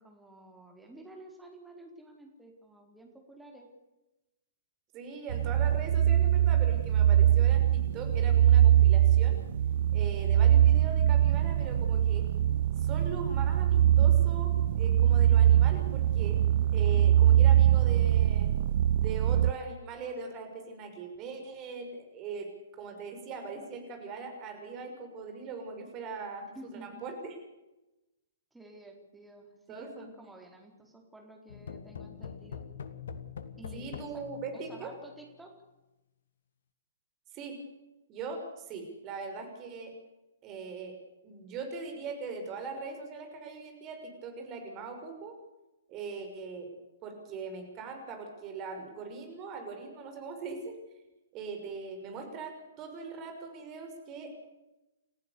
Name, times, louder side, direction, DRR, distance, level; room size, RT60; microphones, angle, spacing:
voice 1, 0.0-3.7 26.5-27.0 28.5-32.6 33.6-34.2 34.5-35.5, right 1 dB, 5° right, 1 dB, 4.2 m, -51 dB
voice 2, 4.9-9.4 9.9-12.2 12.8-16.4 16.7-18.5 19.0-22.5 22.7-26.5 26.8-27.4 29.7-30.1 33.7-34.9 37.3-37.6 38.1-39.9 40.4-40.9 41.2-45.3 45.9-46.7 47.0-50.8 51.3-54.4, right 4 dB, 30° right, 5 dB, 6.1 m, -40 dB
sound 1, 5.3-19.5, right 11 dB, 50° right, 0.8 m, -23 dB
sound 2, 31.5-35.2, left 6 dB, 60° left, 1.7 m, -44 dB
29.5 x 15.0 x 7.1 m, 1.0 s
figure-of-eight pair, 115°, 0 cm